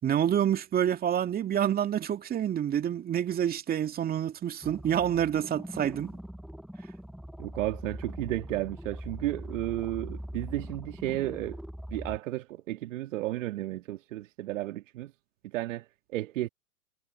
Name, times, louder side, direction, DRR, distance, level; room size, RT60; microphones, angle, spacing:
voice 1, 0.0-6.1, right 10 dB, 20° right, 2.2 m, -28 dB
sound 1, 4.6-12.2, equal, ahead, 0.7 m, -42 dB
voice 2, 7.4-11.6 11.9-15.1 15.4-16.5, right 16 dB, 55° right, 2.2 m, -33 dB
hypercardioid pair, 120°, 46 cm